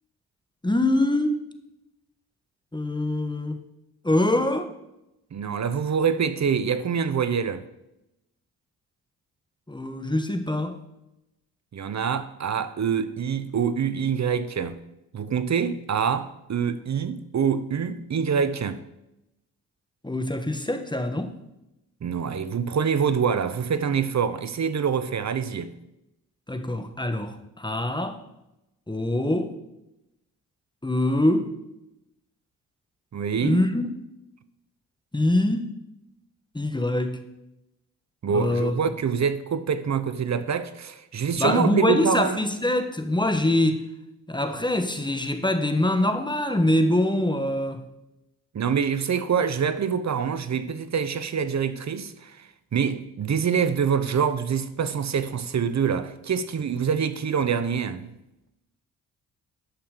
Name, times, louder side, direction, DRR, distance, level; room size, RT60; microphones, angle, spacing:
voice 1, 0.6-1.4 2.7-3.6 4.0-4.7 9.7-10.8 20.0-21.3 26.5-28.2 28.9-29.5 30.8-31.5 33.4-33.8 35.1-35.8 36.5-37.2 38.3-38.8 41.4-43.8 44.3-47.8, left 1 dB, 10° left, 1.3 m, -24 dB
voice 2, 5.3-7.6 11.7-14.8 15.1-18.8 22.0-25.7 33.1-33.6 38.2-42.4 48.5-58.1, right 6 dB, 45° right, 0.9 m, -25 dB
11.5 x 5.7 x 5.1 m
supercardioid pair, 45°, 40 cm